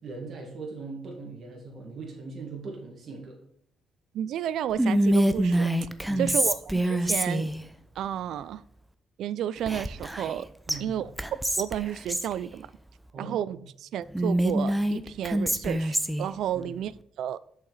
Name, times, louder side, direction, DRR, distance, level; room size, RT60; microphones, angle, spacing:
voice 1, 0.0-3.4 6.1-6.4 10.7-11.0 13.1-13.6 16.5-16.7, right 3 dB, 55° right, -1 dB, 2.1 m, -40 dB
voice 2, 4.1-5.9 6.2-7.5 8.0-8.6 9.2-10.5 10.8-11.1 11.6-12.7 13.2-16.9 17.2-17.4, right 10 dB, 75° right, 18 dB, 0.3 m, -32 dB
Whispering, 4.8-7.6 9.7-10.4 10.7-10.8 11.2-12.3 14.1-16.3, right 1 dB, 5° right, 0.6 m, -25 dB
6.6 x 5.7 x 4.1 m, 0.73 s
cardioid pair, 90°, 0 cm